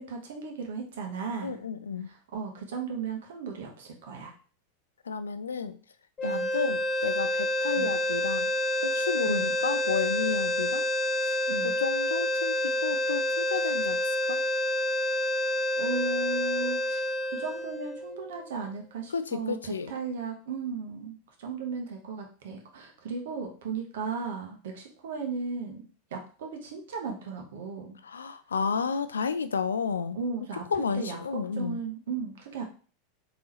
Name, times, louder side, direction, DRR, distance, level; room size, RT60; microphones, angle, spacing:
voice 1, 0.0-1.6 2.1-4.3 6.2-6.5 7.7-7.9 9.2-9.6 11.5-11.8 15.4-15.5 15.8-17.0 17.3-28.0 30.1-30.6 30.9-32.6, right 4 dB, 75° right, 3 dB, 1.0 m, -36 dB
voice 2, 1.4-2.1 5.1-5.8 6.2-8.5 8.8-10.9 11.2-11.4 11.6-14.4 19.1-19.9 28.0-30.2 30.7-31.8, left 5 dB, 90° left, 12 dB, 0.3 m, -32 dB
sound 1, 6.2-18.4, left 1 dB, 20° left, 0.9 m, -28 dB
3.7 x 2.9 x 3.0 m, 0.40 s
hypercardioid pair, 95°, 0 cm